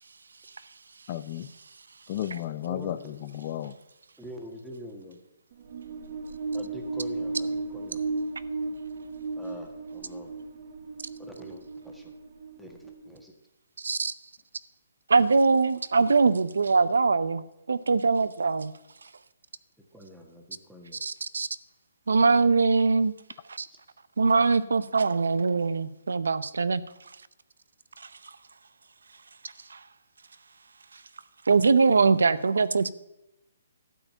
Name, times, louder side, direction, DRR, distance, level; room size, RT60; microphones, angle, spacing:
voice 1, 1.1-1.5 2.1-3.7, left 12 dB, 35° left, 14 dB, 0.5 m, -33 dB
voice 2, 2.7-3.1 4.2-5.2 6.5-8.0 9.4-10.3 11.2-12.1 12.6-13.3 19.9-21.0 23.7-23.8, equal, ahead, 1 dB, 1.5 m, -45 dB
sound 1, 5.5-13.2, right 3 dB, 45° right, 1.1 m, -35 dB
voice 3, 13.8-14.1 15.1-18.7 21.0-21.5 22.1-23.1 23.5-23.7 24.2-26.8 29.7-29.8 31.5-32.9, right 4 dB, 85° right, 15 dB, 0.6 m, -22 dB
12.5 x 5.0 x 8.8 m, 0.89 s
hypercardioid pair, 160°, 0 cm